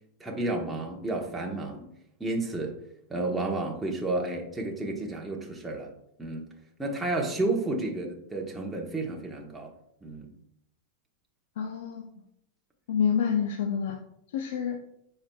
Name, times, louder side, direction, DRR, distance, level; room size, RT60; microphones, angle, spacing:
voice 1, 0.2-1.9 2.2-2.8 3.1-5.9 6.2-6.5 6.8-9.7 10.0-10.3, right 2 dB, 10° right, -1 dB, 1.0 m, -31 dB
voice 2, 11.6-12.1 12.9-14.0 14.3-14.8, left 7 dB, 75° left, 4 dB, 0.6 m, -27 dB
9.4 x 4.5 x 2.3 m, 0.75 s
supercardioid pair, 135°, 0 cm